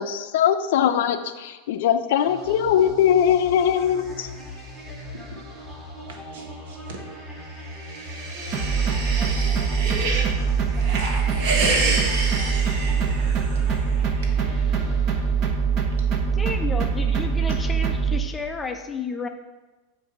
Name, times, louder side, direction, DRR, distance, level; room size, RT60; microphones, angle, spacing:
voice 1, 0.0-4.3, left 9 dB, 70° left, 9 dB, 0.5 m, -21 dB
sound 1, 2.2-15.8, left 2 dB, 20° right, 1.4 m, -39 dB
voice 2, 5.1-5.5 6.0-16.4 17.0-17.2 17.5-17.6, right 2 dB, 80° right, 1 dB, 1.4 m, -50 dB
sound 2, 7.6-10.3 10.7-13.6, right 3 dB, 50° right, 1.2 m, -28 dB
sound 3, 8.5-18.2, right 6 dB, 35° right, 0.6 m, -23 dB
voice 3, 16.2-19.3, left 4 dB, 10° left, 5 dB, 0.4 m, -32 dB
7.9 x 2.7 x 6.0 m, 1.2 s
supercardioid pair, 150°, 0 cm